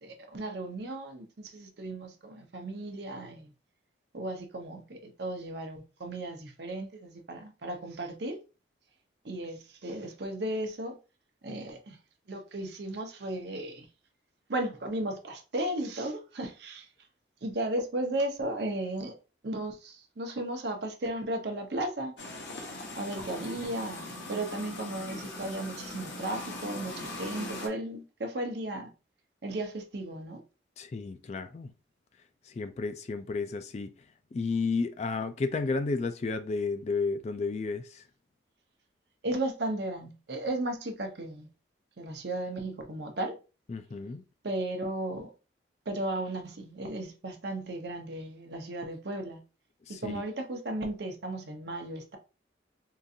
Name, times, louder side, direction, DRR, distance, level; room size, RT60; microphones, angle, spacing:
voice 1, 0.0-3.5 4.1-8.4 9.2-11.0 11.4-12.0 12.3-13.9 14.5-16.9 17.4-19.1 19.4-22.1 23.0-28.9 29.4-30.4 39.2-41.5 42.0-43.3 44.4-45.3 45.9-49.4 49.9-52.2, right 1 dB, 60° right, 0.7 m, -35 dB
sound 1, 22.2-27.7, left 2 dB, 80° left, 0.9 m, -40 dB
voice 2, 30.8-31.7 32.5-33.9 34.3-38.0 43.7-44.2 49.9-50.1, left 4 dB, 35° left, 0.3 m, -32 dB
3.8 x 2.4 x 2.7 m
head